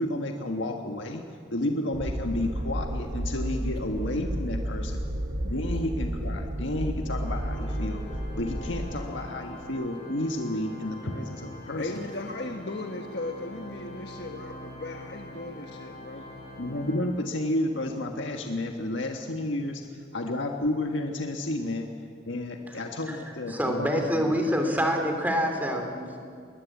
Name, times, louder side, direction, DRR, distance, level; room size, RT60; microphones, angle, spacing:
voice 1, 0.0-5.1 5.4-12.0 16.6-21.9 22.3-24.4, left 1 dB, 85° left, 3 dB, 1.6 m, -31 dB
sound 1, 1.9-9.0, equal, 60° right, 1.4 m, -32 dB
Organ, 7.0-17.6, left 2 dB, 35° left, 7.4 m, -44 dB
voice 2, 11.8-16.3, left 2 dB, 60° left, 3 dB, 1.4 m, -37 dB
voice 3, 23.5-26.2, equal, 10° right, 4 dB, 2.9 m, -26 dB
20.5 x 20.5 x 8.5 m, 2.2 s
head